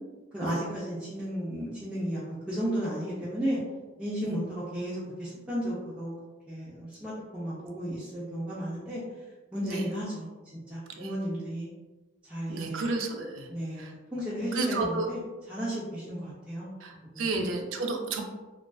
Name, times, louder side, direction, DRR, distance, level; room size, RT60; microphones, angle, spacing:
voice 1, 0.3-3.6 4.0-6.1 6.5-9.0 9.5-10.3 10.7-11.7 12.3-12.9 13.5-15.2 15.5-16.7 17.0-17.4, equal, 5° right, -10 dB, 0.4 m, -34 dB
voice 2, 12.5-13.5 13.8-13.9 14.5-15.1 16.8-18.2, right 3 dB, 85° right, 3 dB, 0.4 m, -31 dB
2.3 x 2.3 x 2.2 m, 1.2 s
head